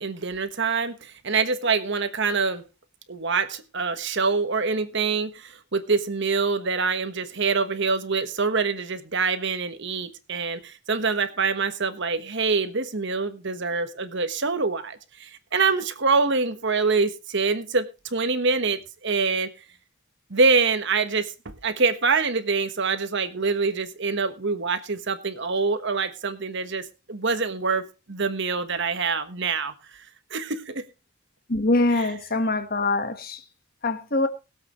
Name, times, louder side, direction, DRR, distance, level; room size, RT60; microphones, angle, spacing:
voice 1, 0.0-2.6 3.1-19.5 20.3-27.8 28.1-30.0 30.3-30.8 31.9-32.1, right 4 dB, 55° right, 1.3 m, -25 dB
voice 2, 31.5-33.4 33.8-34.3, left 2 dB, 45° left, 1.3 m, -23 dB
21.5 x 7.9 x 3.1 m
head